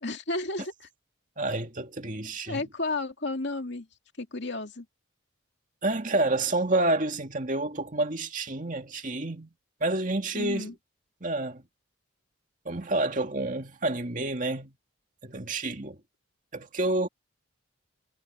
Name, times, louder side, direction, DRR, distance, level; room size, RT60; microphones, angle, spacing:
voice 1, 0.0-0.7 2.5-3.9 4.2-4.9 10.3-10.7, left 2 dB, 55° left, 2.6 m, -32 dB
voice 2, 1.4-2.7 5.8-9.5 9.8-10.7 11.2-11.6 12.7-14.7 15.2-16.0 16.5-17.1, right 2 dB, 40° right, 2.3 m, -29 dB
head